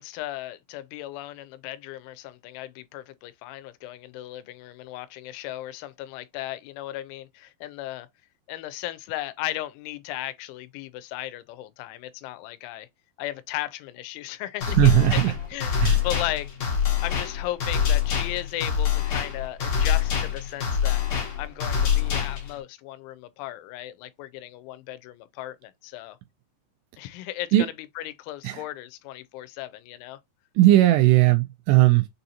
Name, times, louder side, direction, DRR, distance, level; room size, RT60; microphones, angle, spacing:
voice 1, 0.0-8.1 8.5-12.9 13.2-15.2 15.5-16.5 17.0-21.1 21.4-26.2 27.0-30.2, left 15 dB, 85° left, 3.0 m, -36 dB
sound 1, 14.6-22.6, left 8 dB, 70° left, 1.6 m, -25 dB
voice 2, 14.7-15.3 15.8-16.0 27.5-27.7 28.4-28.6 30.6-32.1, right 15 dB, 85° right, 2.5 m, -18 dB
6.8 x 2.6 x 2.7 m
omnidirectional pair, 5.3 m